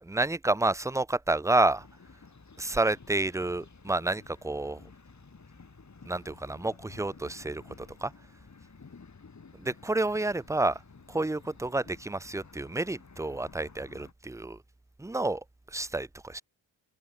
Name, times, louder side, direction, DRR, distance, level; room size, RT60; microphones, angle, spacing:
voice 1, 0.0-1.9 2.6-4.8 6.1-8.1 9.6-10.8 11.1-14.6 15.0-15.4 15.7-16.4, right 2 dB, 5° right, 0.5 m, -29 dB
sound 1, 1.7-14.1, left 5 dB, 40° left, 2.6 m, -53 dB
cardioid pair, 55°, 45 cm